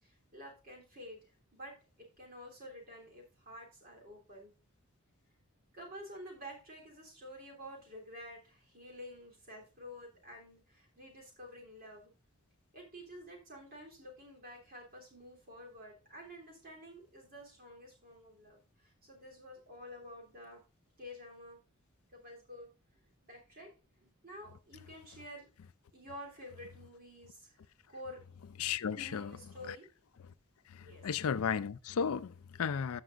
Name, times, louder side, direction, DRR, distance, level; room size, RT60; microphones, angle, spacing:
voice 1, 0.0-4.5 5.7-12.1 12.7-20.6 21.0-21.6 22.1-25.5 25.9-27.6 27.9-28.2 29.0-29.9 30.8-31.1, equal, 40° right, 3.2 m, -50 dB
voice 2, 28.6-29.3 29.7-29.8 30.7-33.0, left 7 dB, 75° left, 0.4 m, -34 dB
14.0 x 6.0 x 2.5 m
head